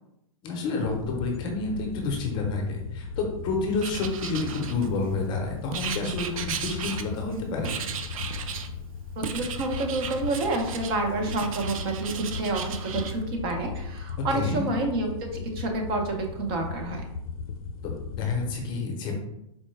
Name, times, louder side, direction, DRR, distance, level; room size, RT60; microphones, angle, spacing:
voice 1, 0.4-7.7 14.3-14.6 17.8-19.1, left 3 dB, 25° left, 1 dB, 0.7 m, -29 dB
sound 1, 0.8-18.6, left 5 dB, 90° left, 0.4 m, -37 dB
Writing, 3.8-5.1 5.7-7.3 7.6-8.7 9.2-11.0 11.3-13.1, right 7 dB, 80° right, 0.5 m, -35 dB
voice 2, 9.2-17.1, right 2 dB, 45° right, 2 dB, 0.7 m, -29 dB
4.2 x 2.1 x 3.2 m, 0.82 s
hypercardioid pair, 145°, 17 cm